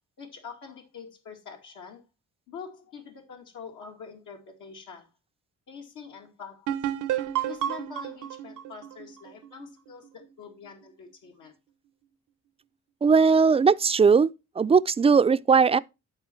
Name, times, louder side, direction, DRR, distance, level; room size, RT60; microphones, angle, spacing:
voice 1, 0.2-2.0 2.5-5.1 5.7-6.8 7.4-11.5, left 6 dB, 80° left, 2.3 m, -45 dB
sound 1, 6.7-10.2, right 11 dB, 90° right, 0.8 m, -31 dB
voice 2, 13.0-14.3 14.6-15.8, right 5 dB, 20° right, 0.3 m, -19 dB
11.5 x 4.2 x 4.4 m
cardioid pair, 90°, 30 cm